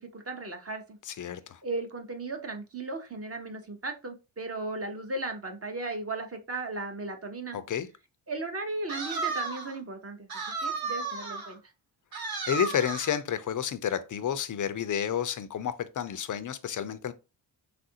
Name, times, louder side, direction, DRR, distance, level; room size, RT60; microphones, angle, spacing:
voice 1, 0.0-1.0 1.6-7.6 8.3-10.3 10.6-11.6, right 2 dB, 30° right, 0.6 m, -36 dB
voice 2, 1.1-1.6 7.5-7.9 12.5-17.1, left 9 dB, 45° left, 0.4 m, -30 dB
sound 1, 8.9-9.8 10.3-11.5 12.1-13.2, right 4 dB, 50° right, 1.0 m, -33 dB
3.4 x 2.5 x 2.7 m
cardioid pair, 80°, 48 cm